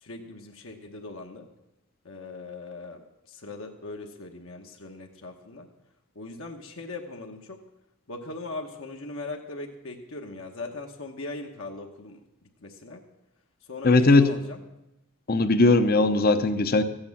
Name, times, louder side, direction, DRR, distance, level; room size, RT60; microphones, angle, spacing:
voice 1, 0.0-1.5 2.0-5.7 6.1-7.6 8.1-13.0 13.7-14.6, left 2 dB, 65° left, 2 dB, 1.1 m, -40 dB
voice 2, 13.8-14.3 15.3-16.8, left 3 dB, 45° left, 10 dB, 0.8 m, -19 dB
15.0 x 8.8 x 7.1 m, 0.89 s
head